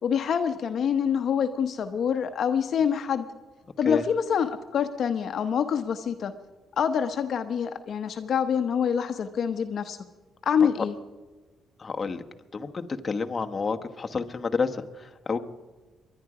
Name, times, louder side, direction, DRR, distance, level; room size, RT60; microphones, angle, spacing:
voice 1, 0.0-3.3 3.8-6.3 6.8-10.0 10.4-10.9, left 7 dB, 60° left, 8 dB, 0.9 m, -26 dB
voice 2, 11.8-12.2 12.5-15.4, left 4 dB, 35° left, 5 dB, 1.1 m, -29 dB
23.5 x 11.0 x 4.9 m, 1.2 s
cardioid pair, 90°, 0 cm